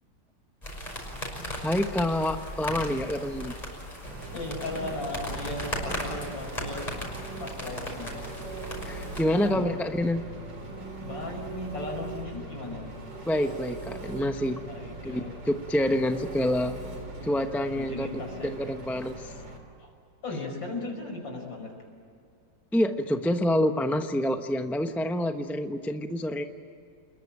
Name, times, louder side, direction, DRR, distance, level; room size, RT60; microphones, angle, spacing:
sound 1, 0.6-9.2, equal, 20° left, 6.0 m, -37 dB
voice 1, 1.6-3.6 8.8-10.2 13.3-14.6 15.0-16.8 17.2-18.1 18.4-19.3 22.7-26.4, left 1 dB, ahead, 6 dB, 0.6 m, -27 dB
Engine, 4.0-19.6, right 3 dB, 75° right, 4.2 m, -40 dB
voice 2, 4.3-6.9 7.4-8.3 8.8-8.9 9.3-9.6 11.0-12.9 14.7-15.3 17.7-18.5 19.8-19.9 20.2-21.7, left 2 dB, 80° left, 2 dB, 6.2 m, -36 dB
28.5 x 21.0 x 8.8 m, 2.4 s
omnidirectional pair, 2.0 m